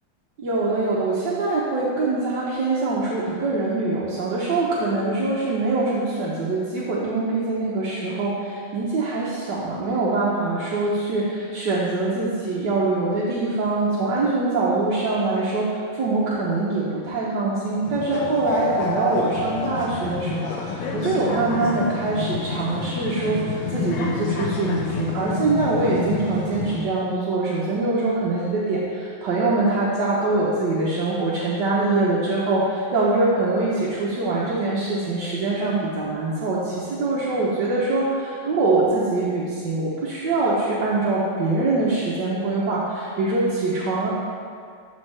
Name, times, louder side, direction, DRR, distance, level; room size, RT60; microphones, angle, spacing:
voice 1, 0.4-44.1, right 3 dB, 60° right, -6 dB, 1.4 m, -23 dB
sound 1, 17.9-26.8, left 4 dB, 65° left, 1.4 m, -28 dB
13.0 x 4.4 x 3.3 m, 2.2 s
omnidirectional pair, 2.4 m